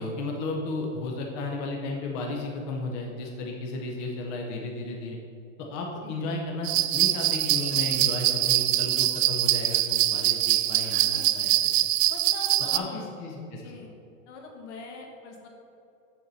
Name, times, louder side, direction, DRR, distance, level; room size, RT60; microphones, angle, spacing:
voice 1, 0.0-5.2 5.6-11.5 11.8-11.9 12.7-13.8, left 2 dB, 25° left, 0 dB, 0.4 m, -34 dB
sound 1, 6.6-12.8, right 14 dB, 80° right, 0.5 m, -24 dB
voice 2, 7.7-8.0 10.8-11.3 12.1-13.1 13.6-13.9 14.3-15.5, left 3 dB, 65° left, 1 dB, 1.6 m, -43 dB
7.5 x 6.8 x 3.9 m, 2.7 s
supercardioid pair, 170°, 38 cm